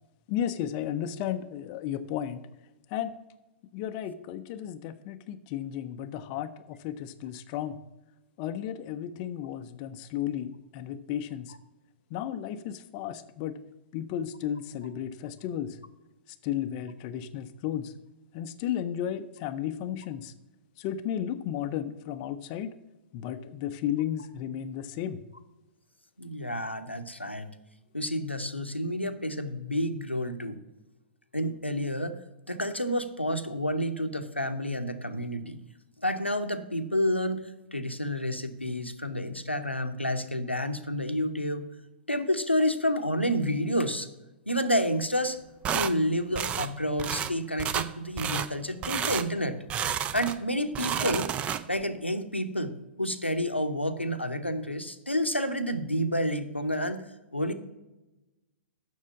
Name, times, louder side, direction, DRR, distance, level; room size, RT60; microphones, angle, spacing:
voice 1, 0.3-2.4 2.9-3.1 3.7-7.8 8.4-11.6 12.1-13.6 13.9-15.8 16.3-17.9 18.3-20.3 20.8-22.7 23.1-25.2, left 10 dB, 35° left, 9 dB, 0.5 m, -34 dB
voice 2, 26.2-27.5 27.9-30.6 31.3-32.2 32.5-35.6 36.0-37.4 37.7-41.7 42.1-44.1 44.5-45.4 45.7-49.6 50.1-51.3 51.7-57.0 57.3-57.5, equal, 90° left, 7 dB, 0.8 m, -29 dB
sound 1, 45.6-45.9 46.4-46.7 47.0-47.3 47.6-47.9 48.2-48.5 48.8-49.3 49.7-50.4 50.7-51.8, right 9 dB, 20° right, 0.4 m, -30 dB
7.4 x 6.2 x 7.2 m, 1.0 s
figure-of-eight pair, 110°, 6 cm